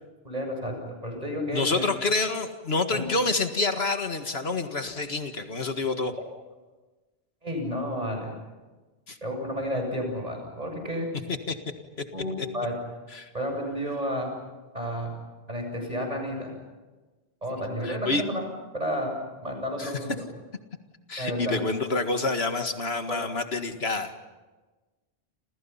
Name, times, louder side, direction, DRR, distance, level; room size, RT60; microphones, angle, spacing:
voice 1, 0.2-0.8 1.0-1.8 2.9-3.0 6.1-6.2 7.4-8.4 9.2-11.1 12.1-12.7 13.3-14.3 14.7-15.2 15.5-16.5 17.4-18.4 18.7-19.1 19.4-20.2 21.2-21.6 23.1-23.2, equal, 40° right, 3 dB, 7.8 m, -31 dB
voice 2, 1.5-6.1 9.1-9.2 11.5-11.6 12.4-12.5 13.1-13.3 17.8-18.2 19.8-19.9 21.1-24.1, left 3 dB, 80° left, 6 dB, 2.1 m, -28 dB
29.5 x 28.0 x 5.8 m, 1.2 s
omnidirectional pair, 1.0 m